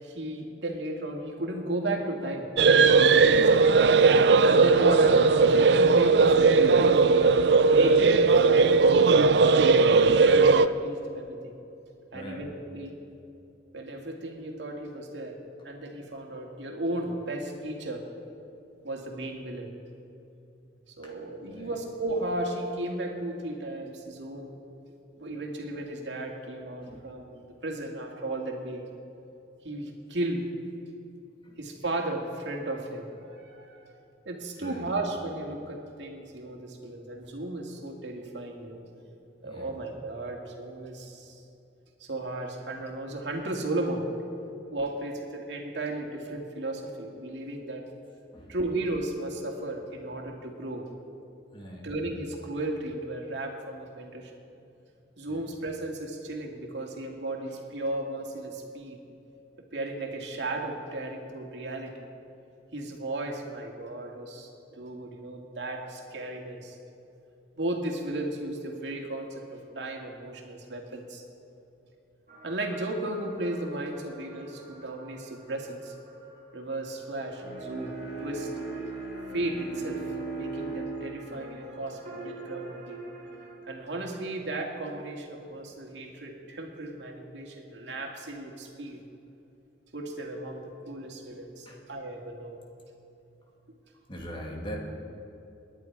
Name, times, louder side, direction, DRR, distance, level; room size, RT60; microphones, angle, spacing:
voice 1, 0.0-2.5 2.9-3.8 4.4-7.0 7.6-8.8 9.2-9.6 10.2-11.5 12.1-13.0 13.7-15.4 15.6-18.0 18.8-19.7 20.9-24.5 25.2-28.8 29.6-30.5 31.6-33.9 34.3-38.8 39.4-41.4 42.0-44.1 44.7-47.8 48.5-50.9 51.8-54.3 55.2-59.0 59.6-62.1 62.7-64.5 64.8-66.8 67.5-71.2 72.4-75.9 76.5-78.5 79.3-80.0 80.3-83.0 83.6-89.0 89.9-92.6, right 2 dB, 85° right, 1 dB, 2.2 m, -35 dB
sound 1, 2.6-10.7, right 4 dB, 70° right, 0.5 m, -18 dB
voice 2, 12.1-12.5 21.0-21.7 26.8-27.1 31.4-31.6 34.6-34.9 39.4-39.7 48.3-48.5 51.5-51.9 55.3-55.4 91.7-91.8 94.1-94.8, equal, 30° left, -1 dB, 2.5 m, -42 dB
sound 2, 72.3-83.6, right 2 dB, 45° right, 2.1 m, -46 dB
Bowed string instrument, 77.4-82.7, right 3 dB, 65° left, 2.3 m, -38 dB
27.5 x 10.5 x 4.7 m, 2.7 s
head